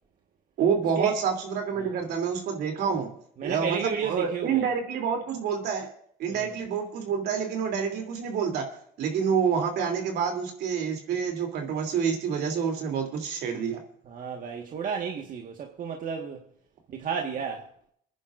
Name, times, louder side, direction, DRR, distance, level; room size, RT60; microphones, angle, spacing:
voice 1, 0.6-3.1 3.4-5.9 6.2-8.6 9.0-13.8, right 6 dB, 75° right, 3.1 m, -28 dB
voice 2, 3.4-4.7 6.2-6.5 14.0-16.4 16.9-17.7, right 6 dB, 55° right, 1.6 m, -32 dB
27.5 x 10.5 x 2.6 m
cardioid pair, 110°, 17 cm